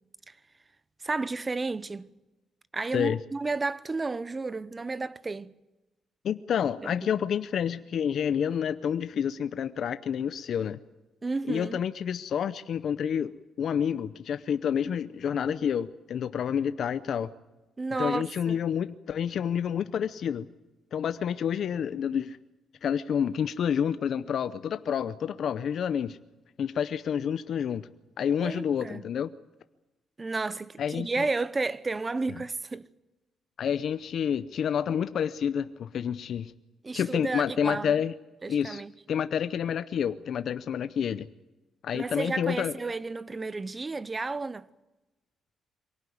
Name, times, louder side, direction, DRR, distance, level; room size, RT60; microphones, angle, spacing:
voice 1, 1.0-2.1 2.7-5.5 6.8-6.9 11.2-11.8 17.8-18.6 28.4-29.1 30.2-32.9 36.8-38.0 38.4-38.9 41.9-44.7, right 3 dB, 25° right, 0.8 m, -32 dB
voice 2, 6.2-10.8 11.5-13.3 13.6-17.3 18.0-20.5 20.9-22.4 22.8-26.2 26.6-27.8 28.2-29.3 30.8-31.2 33.6-36.5 36.9-38.1 38.5-38.8 39.1-41.3 41.8-42.7, left 8 dB, 65° left, 0.7 m, -29 dB
23.5 x 18.0 x 9.5 m
cardioid pair, 90°, 0 cm